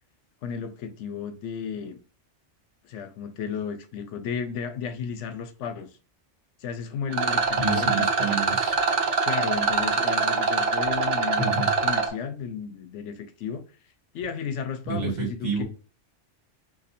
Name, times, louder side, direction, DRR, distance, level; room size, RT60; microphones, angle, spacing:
voice 1, 0.4-2.0 2.8-6.0 6.6-8.4 9.2-11.5 11.8-13.6 14.1-15.6, left 7 dB, 80° left, 0.9 m, -34 dB
Rattle, 7.1-12.1, right 4 dB, 85° right, 1.0 m, -24 dB
voice 2, 7.6-8.8 11.4-11.7 14.9-15.6, right 4 dB, 50° right, 1.4 m, -29 dB
2.6 x 2.5 x 4.1 m
omnidirectional pair, 1.2 m